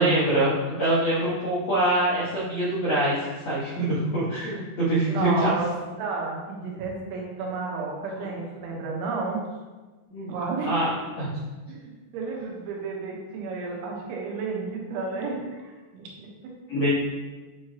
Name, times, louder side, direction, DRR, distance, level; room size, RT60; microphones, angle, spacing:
voice 1, 0.0-3.1 3.4-5.5 10.1-10.3 10.6-11.3 16.7-16.9, right 1 dB, 70° left, -9 dB, 1.6 m, -24 dB
voice 2, 5.1-5.7 6.0-9.5 10.3-10.8 11.7-16.5, right 4 dB, 90° right, -1 dB, 3.5 m, -32 dB
9.1 x 4.8 x 2.9 m, 1.3 s
omnidirectional pair, 5.2 m